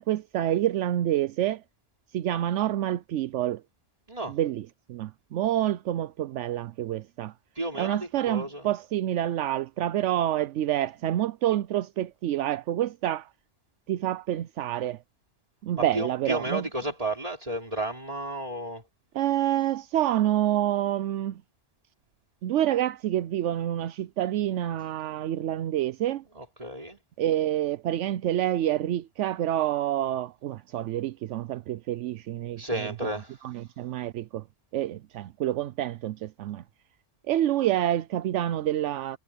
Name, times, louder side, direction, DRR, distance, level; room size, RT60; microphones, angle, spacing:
voice 1, 0.0-1.6 2.1-3.6 4.3-7.3 7.7-13.3 13.9-15.0 15.6-16.7 19.1-21.4 22.4-26.2 27.2-32.9 33.4-34.4 34.7-36.6 37.3-39.2, right 12 dB, 80° right, 0.9 m, -27 dB
voice 2, 7.6-8.6 15.9-18.8 26.3-27.0 32.6-33.3, right 1 dB, 30° right, 3.8 m, -32 dB
omnidirectional pair, 1.3 m